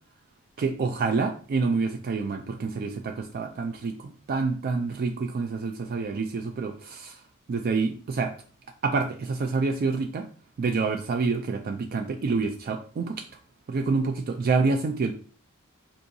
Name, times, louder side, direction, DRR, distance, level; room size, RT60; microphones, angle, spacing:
voice 1, 0.6-7.2 7.5-8.3 8.8-10.3 10.6-13.3 13.7-15.1, right 4 dB, 45° right, 5 dB, 0.3 m, -27 dB
4.5 x 2.6 x 2.6 m, 0.42 s
head